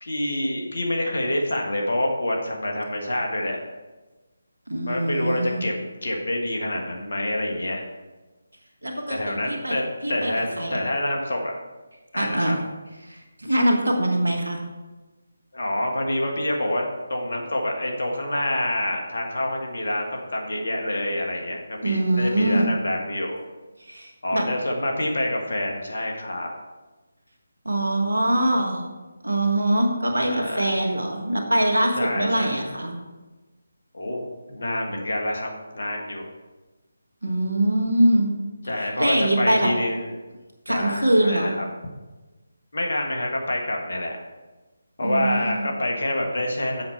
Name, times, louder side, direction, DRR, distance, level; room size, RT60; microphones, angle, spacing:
voice 1, 0.0-3.6 4.8-7.8 9.1-11.5 12.1-12.6 15.5-23.4 24.2-26.5 30.2-30.7 32.0-32.6 33.9-36.3 38.7-40.1 40.7-41.6 42.7-44.2 45.0-46.8, left 1 dB, 60° left, 0 dB, 1.5 m, -27 dB
voice 2, 4.7-5.6 8.8-9.7 10.0-10.8 12.2-12.6 13.0-14.6 21.8-22.7 23.8-24.4 27.6-28.9 29.2-32.9 37.2-38.4 38.8-39.7 40.6-41.5 45.0-45.7, right 1 dB, 75° right, 2 dB, 1.5 m, -23 dB
7.6 x 5.7 x 4.5 m, 1.2 s
figure-of-eight pair, 150°, 0 cm